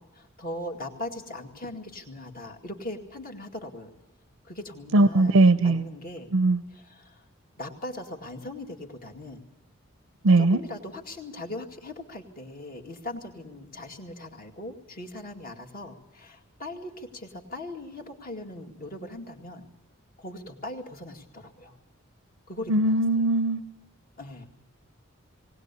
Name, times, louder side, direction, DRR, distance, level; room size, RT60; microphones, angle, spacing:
voice 1, 0.0-3.9 4.4-6.3 6.7-7.2 7.6-9.5 10.4-19.7 20.2-21.8 22.5-23.3 24.2-24.5, left 1 dB, 45° left, 2.1 m, -39 dB
voice 2, 4.9-5.8 6.3-6.6 10.2-10.6 22.7-23.6, right 2 dB, 80° right, 0.7 m, -20 dB
19.0 x 19.0 x 8.3 m
head